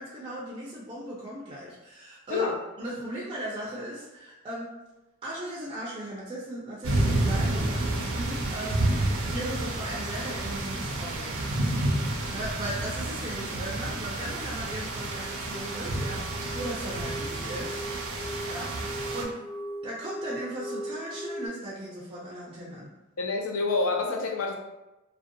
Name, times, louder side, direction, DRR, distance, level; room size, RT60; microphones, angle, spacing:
voice 1, 0.0-2.5 2.8-4.7 5.2-11.4 12.3-17.8 18.4-19.4 19.8-22.9, right 1 dB, 25° right, -5 dB, 0.4 m, -37 dB
sound 1, 6.8-19.2, right 1 dB, 80° right, 0.5 m, -30 dB
sound 2, 14.2-21.5, right 1 dB, 50° left, 1.0 m, -40 dB
voice 2, 23.2-24.5, left 3 dB, 75° left, 1 dB, 0.5 m, -27 dB
2.5 x 2.1 x 2.6 m, 0.99 s
head